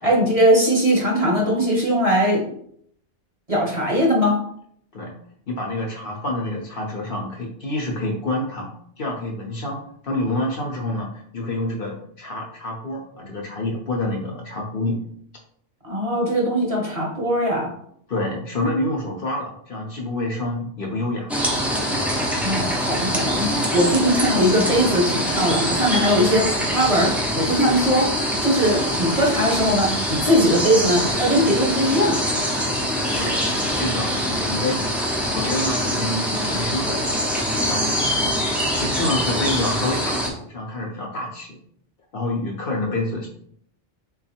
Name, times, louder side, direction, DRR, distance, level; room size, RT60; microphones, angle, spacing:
voice 1, 0.0-2.6 3.5-4.4 15.8-17.7 22.4-32.2, equal, 35° right, -2 dB, 0.9 m, -20 dB
voice 2, 5.5-8.7 9.0-15.0 18.1-21.3 33.2-33.4 33.8-34.8 35.3-37.1 37.7-41.6 42.1-43.3, left 1 dB, 55° left, 0 dB, 0.8 m, -27 dB
sound 1, 21.3-40.3, equal, ahead, 0.4 m, -24 dB
3.9 x 2.3 x 4.2 m, 0.66 s
omnidirectional pair, 1.2 m